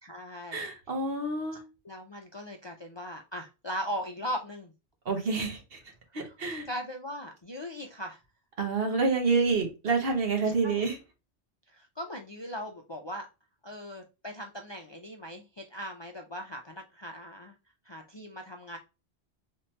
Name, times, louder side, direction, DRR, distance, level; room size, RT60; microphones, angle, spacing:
voice 1, 0.0-0.7 1.8-4.7 6.2-6.3 6.7-8.2 10.6-10.8 11.7-13.3 13.6-17.6 17.8-18.8, equal, 35° left, 0.4 m, -39 dB
voice 2, 0.5-1.6 5.0-5.8 6.1-6.7 8.6-11.0, right 4 dB, 65° right, 1.3 m, -28 dB
3.6 x 2.9 x 3.2 m
omnidirectional pair, 1.1 m